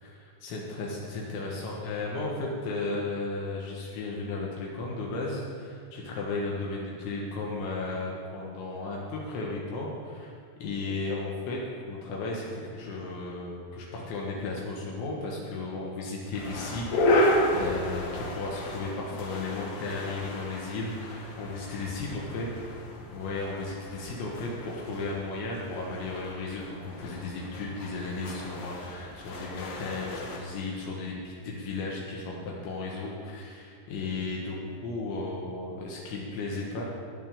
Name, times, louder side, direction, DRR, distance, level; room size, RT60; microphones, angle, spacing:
voice 1, 0.0-10.3 10.6-11.6 11.9-22.5 23.1-36.8, left 3 dB, 80° left, -3 dB, 3.7 m, -35 dB
sound 1, 16.3-30.4, left 1 dB, 60° left, 2.8 m, -32 dB
12.0 x 9.3 x 6.7 m, 2.2 s
omnidirectional pair, 5.3 m